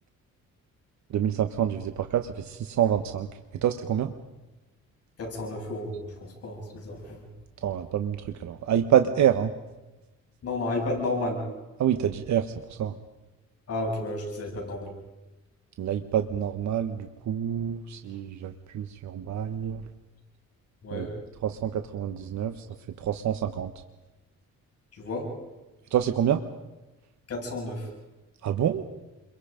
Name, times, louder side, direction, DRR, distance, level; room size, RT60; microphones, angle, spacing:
voice 1, 1.1-3.3 3.6-4.1 7.6-9.5 11.8-12.5 12.8-12.9 15.8-19.8 20.9-21.1 21.4-22.7 23.0-23.7 25.9-26.4 28.4-28.9, right 9 dB, 70° right, 8 dB, 1.3 m, -27 dB
voice 2, 5.2-7.2 10.4-11.5 13.7-15.0 20.8-21.1 24.9-25.4 27.3-27.9, left 2 dB, 55° left, 0 dB, 7.7 m, -32 dB
29.0 x 23.0 x 5.2 m, 1.1 s
cardioid pair, 115°, 30 cm